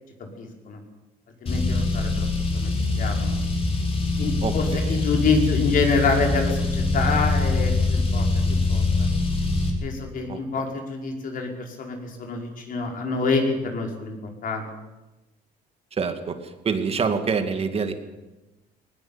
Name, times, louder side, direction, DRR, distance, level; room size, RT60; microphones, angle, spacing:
voice 1, 0.4-0.8 1.4-2.3 2.5-3.4 4.2-8.8 9.8-14.2 14.4-14.7, left 4 dB, 55° left, 2 dB, 5.7 m, -26 dB
Car, 1.5-9.7, left 3 dB, 35° left, 6.0 m, -23 dB
voice 2, 4.4-5.0 10.3-10.4 16.0-16.3 16.6-17.9, right 5 dB, 35° right, 7 dB, 2.5 m, -26 dB
19.5 x 19.5 x 9.1 m, 1.1 s
cardioid pair, 110°, 17 cm